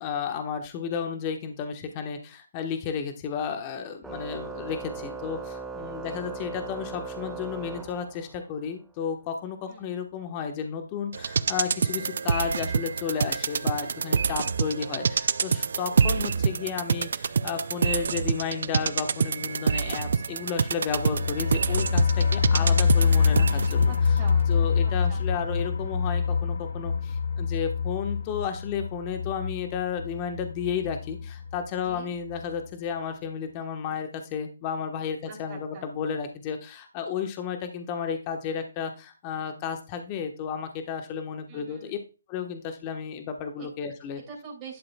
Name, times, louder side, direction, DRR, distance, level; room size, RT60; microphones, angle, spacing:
voice 1, 0.0-23.9 24.5-42.0 42.3-44.2, left 7 dB, 25° left, 6 dB, 1.2 m, -33 dB
Organ, 4.0-8.5, right 4 dB, 5° right, 0.6 m, -38 dB
voice 2, 6.0-6.5 9.7-9.9 15.9-16.2 23.9-24.5 24.8-25.2 31.8-32.1 35.3-35.9 41.5-41.9 43.6-43.7 44.3-44.8, right 5 dB, 20° right, -2 dB, 3.2 m, -45 dB
sound 1, 11.1-24.0 24.3-24.4, right 6 dB, 60° right, 0.4 m, -27 dB
sound 2, 20.9-31.6 31.9-32.0 32.3-32.4, left 5 dB, 65° left, 0.7 m, -25 dB
11.5 x 6.7 x 2.3 m, 0.32 s
hypercardioid pair, 150°, 0 cm